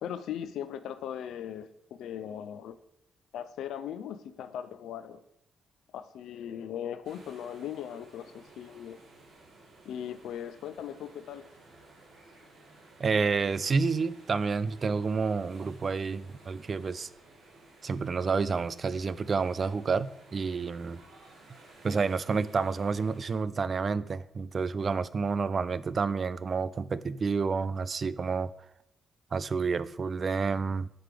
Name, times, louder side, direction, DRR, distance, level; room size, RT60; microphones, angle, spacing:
voice 1, 0.0-2.8 3.3-5.2 5.9-9.0 9.8-11.4, left 9 dB, 90° left, 0.4 m, -39 dB
sound 1, 7.0-23.4, right 2 dB, 80° right, 2.2 m, -55 dB
voice 2, 13.0-17.1 17.8-21.0 21.8-28.5 29.3-30.9, right 5 dB, 40° right, 0.3 m, -29 dB
7.7 x 3.3 x 5.1 m
cardioid pair, 115°, 0 cm